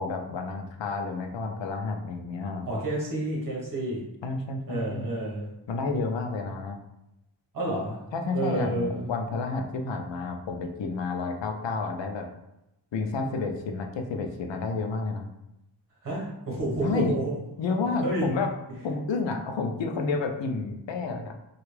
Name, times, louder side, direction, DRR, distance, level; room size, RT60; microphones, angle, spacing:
voice 1, 0.0-2.7 4.2-5.1 5.7-6.8 8.1-12.3 12.9-15.3 16.8-17.2 17.6-18.5 18.8-21.4, left 4 dB, 90° left, 4 dB, 0.5 m, -30 dB
voice 2, 2.7-4.0 4.7-5.5 7.5-8.0 8.3-9.1 16.0-17.4 18.0-18.2, right 1 dB, 50° right, -4 dB, 1.1 m, -29 dB
3.3 x 2.4 x 3.2 m, 0.90 s
wide cardioid pair, 155°, 43 cm